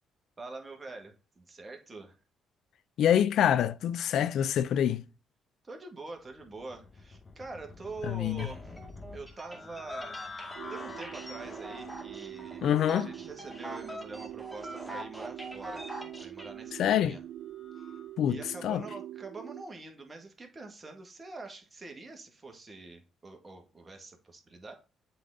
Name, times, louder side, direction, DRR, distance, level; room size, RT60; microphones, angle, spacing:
voice 1, 0.4-2.2 5.6-8.7 9.1-10.2 10.7-15.9 16.2-17.2 17.8-17.9 18.3-24.7, right 3 dB, 30° right, 1.8 m, -45 dB
voice 2, 3.0-5.0 8.1-8.5 12.6-13.1 16.8-17.1 18.2-18.8, left 10 dB, 70° left, 0.4 m, -26 dB
sound 1, 6.3-18.1, left 4 dB, 40° left, 0.8 m, -50 dB
sound 2, 8.4-16.5, right 1 dB, 5° left, 2.3 m, -43 dB
sound 3, 10.6-19.6, right 12 dB, 70° right, 0.6 m, -44 dB
7.8 x 3.9 x 3.7 m
supercardioid pair, 60°, 0 cm